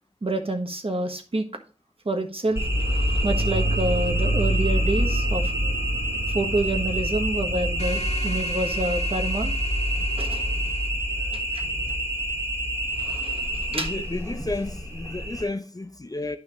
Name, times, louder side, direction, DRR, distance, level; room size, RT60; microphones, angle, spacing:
voice 1, 0.2-1.4 2.0-5.7 6.3-9.5 10.2-10.4 11.3-11.6 13.0-13.9, right 2 dB, 45° right, 1.3 m, -28 dB
sound 1, 2.5-11.6 11.9-12.0, right 5 dB, 70° right, 1.0 m, -35 dB
sound 2, 2.6-15.4, equal, 20° right, 2.3 m, -26 dB
sound 3, 7.8-10.9, left 1 dB, 55° left, 1.4 m, -40 dB
voice 2, 13.7-16.4, left 2 dB, 25° left, 0.5 m, -32 dB
10.0 x 5.6 x 3.0 m
wide cardioid pair, 70°, 13 cm